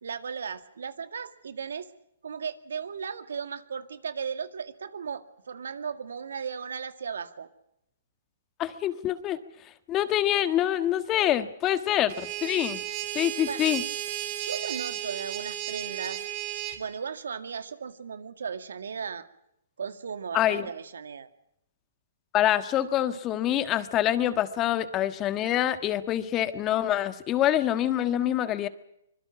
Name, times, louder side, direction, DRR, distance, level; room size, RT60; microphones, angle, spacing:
voice 1, 0.0-1.9 2.2-7.5 13.5-13.6 14.3-16.2 16.8-19.3 19.8-21.3, right 6 dB, 80° right, 10 dB, 2.0 m, -36 dB
voice 2, 8.6-9.4 9.9-12.8 13.1-13.8 20.3-20.7 22.3-28.7, left 12 dB, 25° left, 11 dB, 1.5 m, -26 dB
sound 1, 12.1-16.8, right 12 dB, 45° right, 4.1 m, -34 dB
25.5 x 21.5 x 6.0 m, 0.78 s
hypercardioid pair, 140°, 0 cm